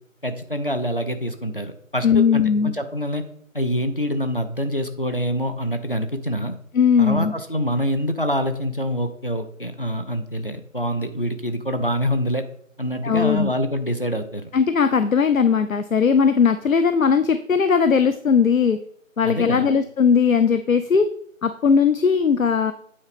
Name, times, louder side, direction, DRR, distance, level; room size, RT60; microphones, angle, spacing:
voice 1, 0.2-3.2 3.5-6.5 7.0-12.4 12.8-14.5 19.2-19.7, equal, 40° left, 7 dB, 0.7 m, -25 dB
voice 2, 2.0-2.7 6.7-7.3 13.0-13.5 14.5-18.8 19.2-21.1 21.4-22.7, left 6 dB, 75° left, 10 dB, 0.7 m, -18 dB
8.7 x 4.2 x 5.1 m, 0.64 s
figure-of-eight pair, 180°, 40 cm